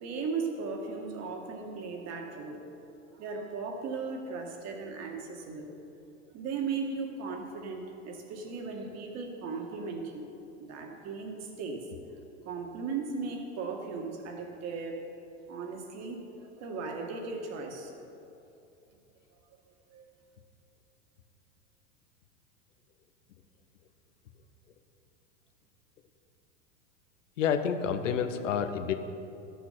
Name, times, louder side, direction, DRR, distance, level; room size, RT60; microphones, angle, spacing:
voice 1, 0.0-2.6 3.1-5.7 6.3-10.3 10.6-11.8 12.5-15.1 15.5-18.1 19.9-20.1, right 4 dB, 45° right, 2 dB, 2.0 m, -37 dB
voice 2, 27.4-28.9, left 7 dB, 80° left, 9 dB, 1.0 m, -29 dB
13.0 x 7.2 x 5.9 m, 2.7 s
hypercardioid pair, 100°, 37 cm